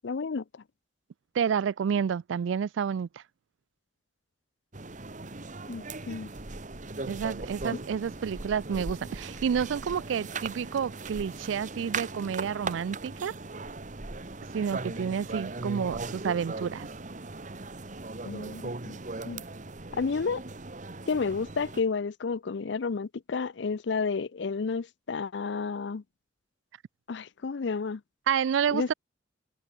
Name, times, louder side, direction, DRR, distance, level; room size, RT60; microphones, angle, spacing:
voice 1, 0.0-0.4 5.7-6.3 18.3-19.0 19.2-19.4 20.0-20.4 21.1-26.0 27.1-28.0 28.7-28.9, left 4 dB, 65° left, 0.5 m, -31 dB
voice 2, 1.3-3.1 7.1-13.3 14.5-16.9 28.3-28.9, right 7 dB, 80° right, 0.3 m, -29 dB
sound 1, 4.7-21.8, right 3 dB, 40° right, 1.5 m, -38 dB
open air
head